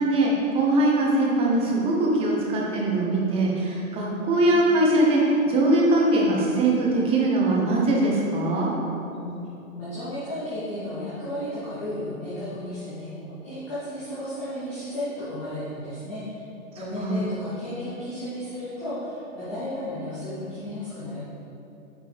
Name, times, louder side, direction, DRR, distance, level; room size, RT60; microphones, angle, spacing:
voice 1, 0.0-5.2 5.5-8.7 17.0-17.2, right 2 dB, 15° right, -3 dB, 0.8 m, -21 dB
voice 2, 9.1-9.5 9.8-13.1 13.4-16.4 16.7-21.2, left 1 dB, 5° left, -13 dB, 0.4 m, -33 dB
9.1 x 4.5 x 3.4 m, 2.8 s
hypercardioid pair, 140°, 42 cm